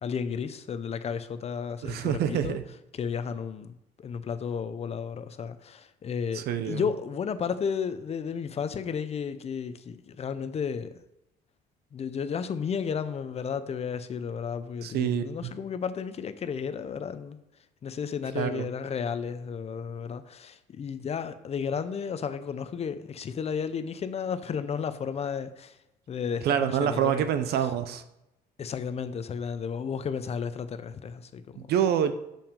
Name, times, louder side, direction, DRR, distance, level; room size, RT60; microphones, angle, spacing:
voice 1, 0.0-2.6 2.9-11.0 11.9-17.4 17.8-25.8 26.1-27.3 28.6-31.7, left 6 dB, 40° left, 0.6 m, -33 dB
voice 2, 1.8-2.6 6.3-6.8 14.8-15.5 18.3-18.7 26.4-28.0 31.6-32.1, right 9 dB, 70° right, 0.8 m, -27 dB
7.2 x 5.7 x 5.2 m
cardioid pair, 110°, 17 cm